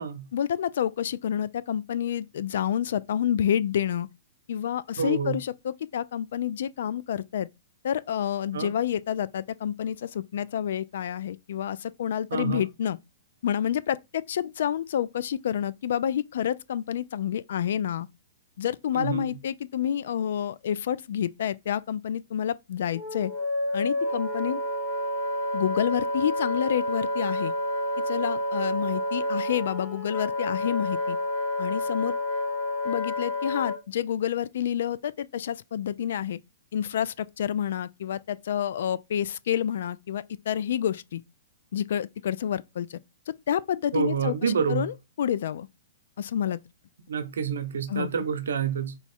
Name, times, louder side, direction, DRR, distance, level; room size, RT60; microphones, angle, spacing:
voice 1, 0.3-4.1 4.5-7.5 7.8-13.0 13.4-18.1 18.6-23.3 23.7-24.6 25.5-27.5 28.1-31.2 31.6-32.2 32.8-36.4 36.7-41.2 41.7-43.0 43.3-45.7 46.2-46.6 47.9-48.1, left 9 dB, 65° left, 0.3 m, -29 dB
voice 2, 5.0-5.4 8.5-8.7 12.3-12.7 18.9-19.3 43.9-44.9 47.1-49.0, right 7 dB, 80° right, 0.7 m, -28 dB
Wind instrument woodwind instrument, 22.9-33.8, left 1 dB, 20° left, 1.6 m, -29 dB
4.0 x 2.4 x 4.2 m
hypercardioid pair, 130°, 0 cm